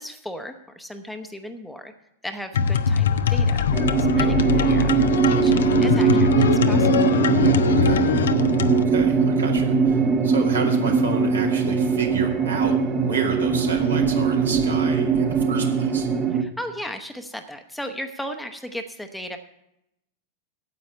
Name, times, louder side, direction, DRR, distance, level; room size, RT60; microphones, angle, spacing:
voice 1, 0.0-1.9 2.2-3.6 4.0-6.9 16.3-19.4, equal, 5° left, 7 dB, 0.9 m, -36 dB
sound 1, 2.5-8.8, left 7 dB, 65° left, 0.6 m, -22 dB
sound 2, 3.7-16.4, right 5 dB, 25° right, 1.1 m, -21 dB
voice 2, 8.9-16.1, right 4 dB, 75° right, 0 dB, 2.2 m, -30 dB
9.4 x 7.6 x 8.4 m, 0.82 s
figure-of-eight pair, 90°, 0 cm